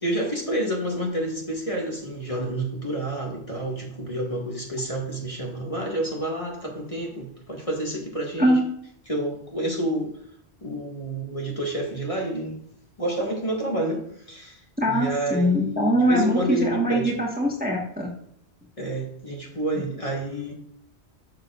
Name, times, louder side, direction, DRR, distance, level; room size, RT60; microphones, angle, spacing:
voice 1, 0.0-8.6 9.1-10.1 10.6-12.6 13.0-14.6 14.9-17.1 18.8-20.6, right 1 dB, 30° left, -1 dB, 1.9 m, -29 dB
voice 2, 14.8-18.1, equal, 10° right, -1 dB, 1.4 m, -22 dB
12.0 x 6.9 x 2.5 m, 0.70 s
omnidirectional pair, 1.1 m